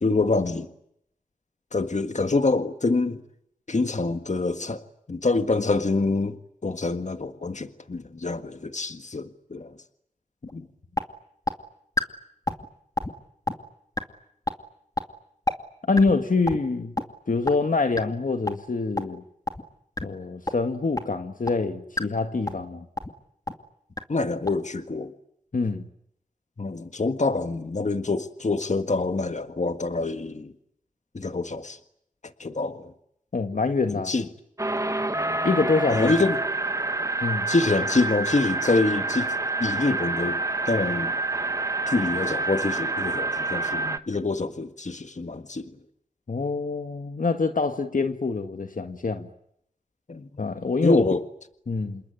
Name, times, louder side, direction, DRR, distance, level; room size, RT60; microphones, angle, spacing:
voice 1, 0.0-0.7 1.7-3.2 3.7-6.4 6.6-9.7 10.5-10.7 24.1-25.1 26.6-30.5 31.1-31.8 32.4-32.9 33.9-34.2 35.9-36.4 37.5-39.3 39.6-40.4 40.6-41.1 41.9-45.8 50.1-50.3 50.8-51.2, left 3 dB, 60° left, 1.7 m, -26 dB
sound 1, 10.5-10.6 11.0-11.1 11.5-11.6 12.0-12.1 12.5-12.7 13.0-13.1 13.5-13.6 14.0-14.1 14.5-14.6 15.0-15.1 15.5-15.6 16.0-16.1 16.5-16.6 17.0-17.1 17.5-17.6 18.0-18.1 18.5-18.6 19.0-19.1 19.5-19.6 20.0-20.1 20.5-20.6 21.0-21.1 21.5-21.6 22.0-22.1 22.5-22.7 23.0-23.1 23.5-23.6 24.0-24.1 24.5-24.6, left 1 dB, 25° left, 2.3 m, -26 dB
voice 2, 15.9-17.0 17.3-19.2 20.0-22.9 25.5-25.9 33.3-34.1 35.4-36.1 37.2-37.5 46.3-49.3 50.4-51.0 51.7-52.0, left 3 dB, 75° left, 1.6 m, -25 dB
sound 2, 34.6-44.0, right 3 dB, 20° right, 1.3 m, -27 dB
28.0 x 22.0 x 9.3 m
wide cardioid pair, 65°, 14 cm